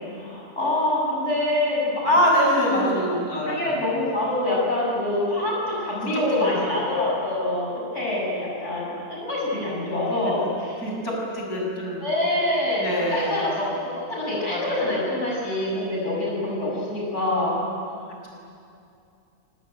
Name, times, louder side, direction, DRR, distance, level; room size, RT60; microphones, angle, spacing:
voice 1, 0.1-3.0 3.4-10.8 12.0-17.6, left 1 dB, 50° left, -4 dB, 7.5 m, -25 dB
voice 2, 2.0-3.8 6.3-6.6 10.8-12.1 12.8-13.4 14.5-15.0, equal, 85° left, -2 dB, 8.0 m, -24 dB
26.0 x 25.0 x 9.1 m, 2.5 s
omnidirectional pair, 1.6 m